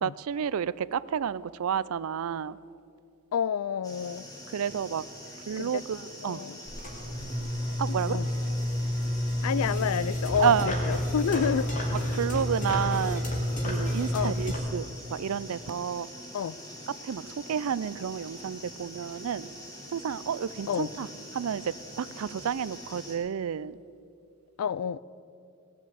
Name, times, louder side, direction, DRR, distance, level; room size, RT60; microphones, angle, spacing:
voice 1, 0.0-2.6 4.5-5.0 5.5-6.4 7.8-8.2 10.4-10.7 12.1-13.3 13.6-14.8 15.1-16.1 17.0-17.2 17.5-19.5 19.9-21.1 21.3-23.8, right 8 dB, 75° right, 19 dB, 0.4 m, -30 dB
voice 2, 3.3-4.3 5.6-5.8 6.2-6.6 7.9-8.3 9.4-11.7 12.1-12.2 14.1-14.4 16.3-16.6 20.7-20.9 24.6-25.0, left 7 dB, 80° left, 20 dB, 0.4 m, -29 dB
sound 1, 3.8-23.2, equal, 15° left, 2.1 m, -45 dB
sound 2, 6.7-14.6, left 1 dB, 35° left, 2.3 m, -30 dB
17.5 x 7.4 x 7.9 m, 2.5 s
head